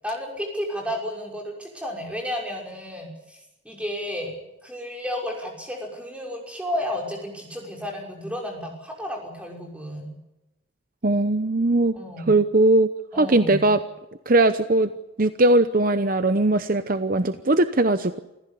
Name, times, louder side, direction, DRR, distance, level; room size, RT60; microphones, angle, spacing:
voice 1, 0.0-3.4 3.6-10.1 11.9-12.4 13.1-13.7, equal, 5° right, 0 dB, 5.8 m, -32 dB
voice 2, 11.0-11.9 12.3-12.9 13.2-13.8 14.3-14.9 15.2-18.2, right 2 dB, 45° right, 11 dB, 0.8 m, -19 dB
28.5 x 15.0 x 8.5 m, 0.97 s
head